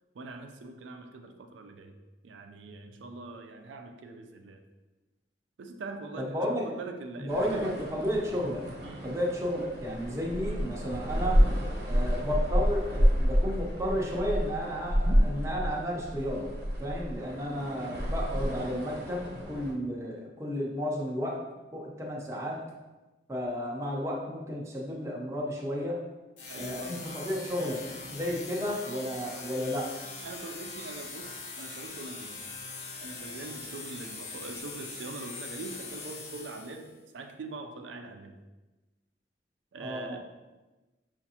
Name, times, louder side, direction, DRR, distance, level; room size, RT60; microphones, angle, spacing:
voice 1, 0.1-1.9 2.2-4.6 5.6-7.9 8.8-9.1 26.5-27.1 30.2-32.4 33.0-38.3 39.7-40.2, right 3 dB, 85° right, 5 dB, 0.4 m, -43 dB
voice 2, 6.2-6.6 7.2-8.6 9.0-11.4 11.8-16.5 16.8-21.4 21.7-22.6 23.3-26.0 26.5-27.8 28.1-29.9 39.8-40.2, equal, 15° right, -3 dB, 0.6 m, -32 dB
sound 1, 7.3-19.7, equal, 55° right, 0.9 m, -29 dB
sound 2, 26.4-36.9, left 3 dB, 85° left, 0.8 m, -42 dB
5.7 x 2.5 x 2.8 m, 1.1 s
head